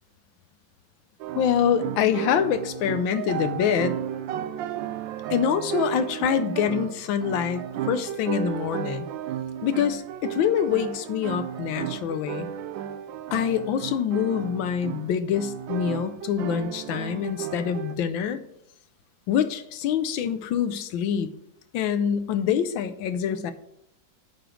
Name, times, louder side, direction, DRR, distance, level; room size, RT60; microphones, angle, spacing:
sound 1, 1.2-17.9, right 10 dB, 80° right, 1.3 m, -33 dB
voice 1, 1.3-3.9 5.3-9.1 9.6-12.5 13.3-18.4 19.3-21.3 21.7-23.5, left 8 dB, 85° left, 10 dB, 1.4 m, -25 dB
8.9 x 4.9 x 6.3 m, 0.77 s
omnidirectional pair, 2.1 m